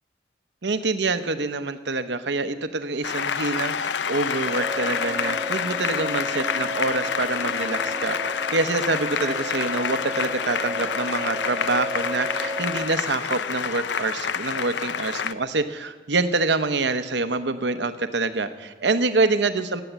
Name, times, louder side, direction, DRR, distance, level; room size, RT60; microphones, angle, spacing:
voice 1, 0.6-19.8, right 3 dB, 75° right, 10 dB, 0.9 m, -26 dB
Applause, 3.0-15.3, left 7 dB, 85° left, 0.6 m, -28 dB
sound 1, 4.5-12.8, equal, 25° right, 1.2 m, -33 dB
16.5 x 10.0 x 8.1 m, 1.3 s
head